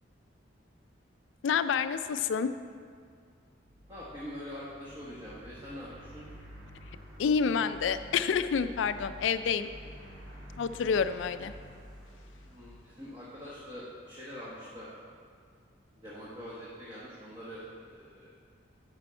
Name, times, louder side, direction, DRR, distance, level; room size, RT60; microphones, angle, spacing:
voice 1, 1.4-2.5 7.2-9.7 10.6-11.5, left 6 dB, 80° left, 12 dB, 0.3 m, -28 dB
sound 1, 3.5-13.7, equal, 80° right, 2.3 m, -50 dB
voice 2, 3.9-6.2 12.4-14.9 16.0-18.3, equal, 25° right, -9 dB, 1.3 m, -44 dB
10.5 x 5.3 x 4.4 m, 2.1 s
head